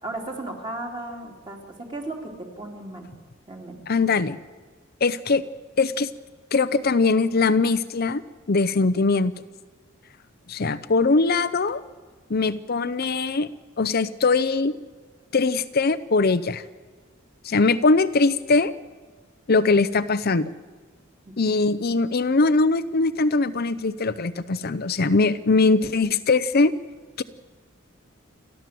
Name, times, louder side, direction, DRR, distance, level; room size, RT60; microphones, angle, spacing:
voice 1, 0.0-3.1 3.5-3.8 21.5-21.6, right 2 dB, 25° right, 1 dB, 3.4 m, -35 dB
voice 2, 3.9-4.4 5.0-5.4 5.8-6.1 6.5-8.2 8.5-9.3 10.5-11.8 12.3-13.5 13.8-14.7 15.3-16.6 17.4-18.7 19.5-20.5 21.4-26.7 27.2-27.3, left 3 dB, 50° left, 12 dB, 0.7 m, -21 dB
29.5 x 12.5 x 7.7 m, 1.4 s
head